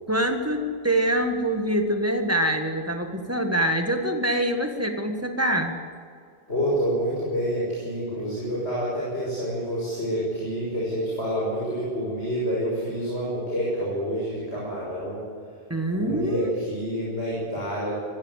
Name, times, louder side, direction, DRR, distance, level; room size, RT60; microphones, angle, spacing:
voice 1, 0.1-5.8 15.7-16.5, right 1 dB, 15° right, 5 dB, 1.7 m, -25 dB
voice 2, 6.5-15.2 16.0-17.9, equal, 80° left, -6 dB, 6.4 m, -28 dB
21.0 x 15.5 x 8.2 m, 2.3 s
omnidirectional pair, 1.1 m